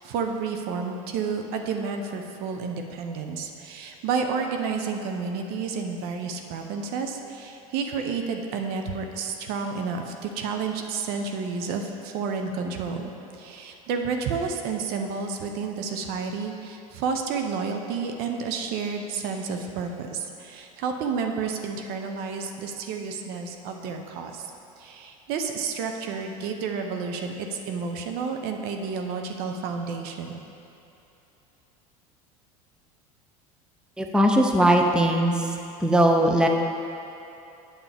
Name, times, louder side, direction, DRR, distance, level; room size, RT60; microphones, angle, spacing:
voice 1, 0.0-24.5 24.8-30.4, right 5 dB, 55° right, 4 dB, 0.7 m, -30 dB
voice 2, 34.0-35.5 35.8-36.5, right 1 dB, 5° right, 3 dB, 0.6 m, -20 dB
8.9 x 7.2 x 3.5 m, 2.8 s
hypercardioid pair, 80°, 19 cm